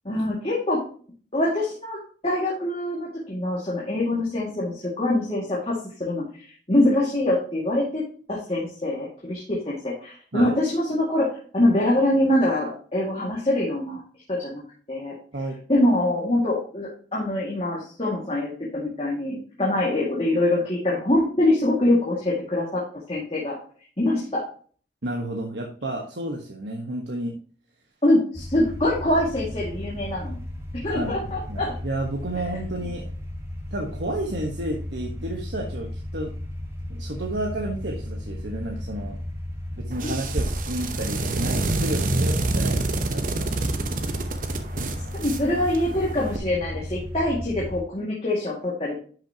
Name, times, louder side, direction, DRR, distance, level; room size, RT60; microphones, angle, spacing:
voice 1, 0.0-0.8 1.3-2.0 2.2-6.2 6.7-8.0 8.3-11.3 11.5-14.0 14.3-14.6 14.9-15.1 15.7-22.8 23.1-23.6 24.0-24.4 28.0-30.4 30.8-31.7 40.0-40.1 45.1-49.0, left 1 dB, 30° left, -5 dB, 2.2 m, -24 dB
voice 2, 25.0-27.4 30.8-33.1 33.7-36.3 36.9-39.2 39.8-43.4, right 1 dB, 70° right, 0 dB, 1.3 m, -31 dB
sound 1, 28.3-47.8, left 1 dB, 15° right, 1.8 m, -35 dB
sound 2, 39.9-46.4, right 2 dB, 45° right, 0.9 m, -27 dB
10.5 x 6.1 x 2.9 m, 0.42 s
head